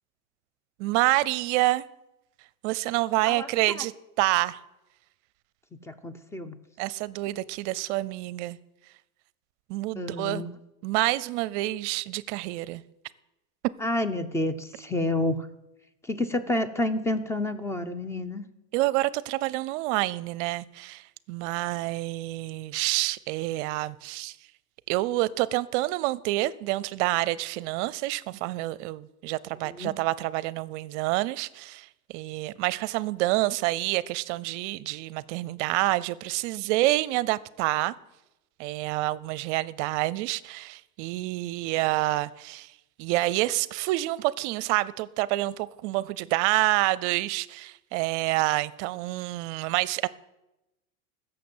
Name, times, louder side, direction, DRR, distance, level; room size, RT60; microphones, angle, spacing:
voice 1, 0.8-1.9 2.6-3.9 4.2-4.6 6.8-8.6 9.7-10.4 10.8-12.8 18.7-24.4 24.9-37.9 38.6-42.7 43.0-50.1, right 18 dB, 55° right, 0.6 m, -28 dB
voice 2, 3.3-3.8 5.8-6.6 9.9-10.5 13.8-15.5 16.0-18.5 29.6-29.9, left 1 dB, 5° left, 0.7 m, -29 dB
15.0 x 6.9 x 7.9 m
supercardioid pair, 135°, 44 cm